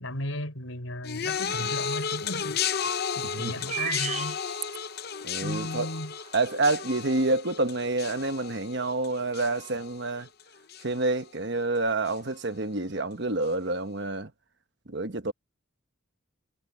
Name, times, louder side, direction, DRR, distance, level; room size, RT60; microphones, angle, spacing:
voice 1, 0.0-2.6 3.2-4.4 5.4-6.1, left 1 dB, 75° left, 5.5 m, -35 dB
sound 1, 1.0-10.4 10.7-11.2 12.1-12.2, left 7 dB, 50° left, 0.7 m, -33 dB
sound 2, 1.5-1.6 1.9-2.0 3.4-5.0 5.5-5.6 5.9-6.3, right 8 dB, 30° right, 0.6 m, -34 dB
voice 2, 5.2-5.9 6.3-10.3 10.8-14.3 14.9-15.3, right 2 dB, 55° right, 1.2 m, -28 dB
head